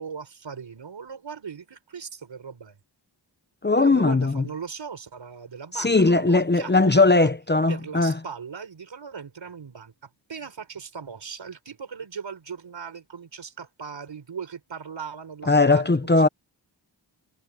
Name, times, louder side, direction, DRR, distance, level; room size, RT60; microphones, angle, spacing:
voice 1, 0.0-2.8 3.8-7.3 7.7-16.3, right 6 dB, 75° right, 4.5 m, -38 dB
voice 2, 3.6-4.4 5.8-8.1 15.5-16.3, left 3 dB, 25° left, 0.8 m, -19 dB
wide cardioid pair, 95°, 45 cm